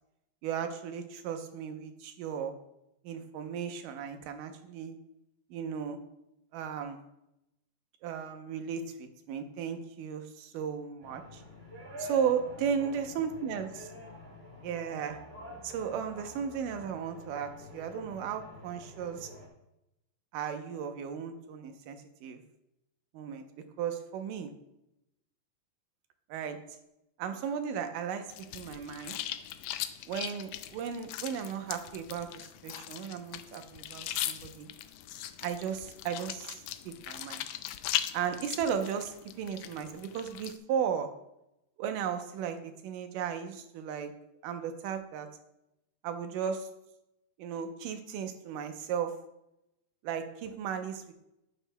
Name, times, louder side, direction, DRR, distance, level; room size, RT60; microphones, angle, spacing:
voice 1, 0.4-2.5 3.0-5.0 5.5-6.0 6.5-7.1 8.0-11.4 12.0-13.9 14.6-15.2 15.6-19.3 20.3-22.4 23.1-23.4 23.8-24.5 26.3-26.6 27.2-29.2 30.1-32.3 32.6-34.7 35.4-37.5 38.1-41.1 41.8-44.1 44.4-45.3 46.0-46.7 47.4-49.1 50.0-51.1, right 7 dB, 90° right, 6 dB, 2.4 m, -35 dB
sound 1, 11.0-19.5, left 1 dB, 25° right, 1.8 m, -47 dB
sound 2, 28.3-40.6, left 12 dB, 85° left, 1.6 m, -39 dB
11.0 x 10.0 x 2.2 m, 0.87 s
omnidirectional pair, 3.7 m